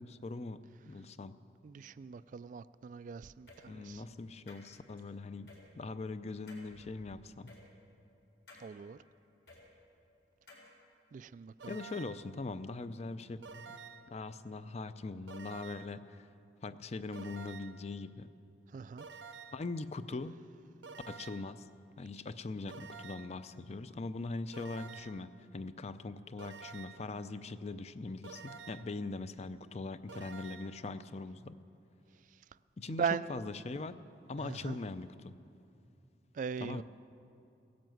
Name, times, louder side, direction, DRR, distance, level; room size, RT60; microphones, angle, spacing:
voice 1, 0.0-1.3 3.7-7.6 11.7-13.7 14.1-16.3 16.6-18.3 19.5-20.3 21.1-21.7 22.0-31.6 32.8-33.9 34.3-35.3 36.6-36.8, left 3 dB, 40° left, 0.5 m, -41 dB
voice 2, 1.6-4.0 8.6-9.0 11.1-11.8 18.7-19.1 32.9-33.4 34.4-34.8 36.3-36.8, right 6 dB, 45° right, 0.3 m, -39 dB
sound 1, 3.5-3.6 4.5-5.0 5.5-5.6 6.5-6.7 7.5-7.6 8.5-8.6 9.5-9.6 10.5-10.7, left 3 dB, 85° left, 4.0 m, -55 dB
sound 2, 11.6-12.3 13.4-14.2 15.3-16.0 17.1-17.9 19.0-19.7 20.8-21.6 22.7-23.4 24.5-25.3 26.4-27.1 28.2-29.0 30.1-30.8, right 5 dB, 90° right, 0.6 m, -50 dB
17.0 x 10.5 x 7.8 m
head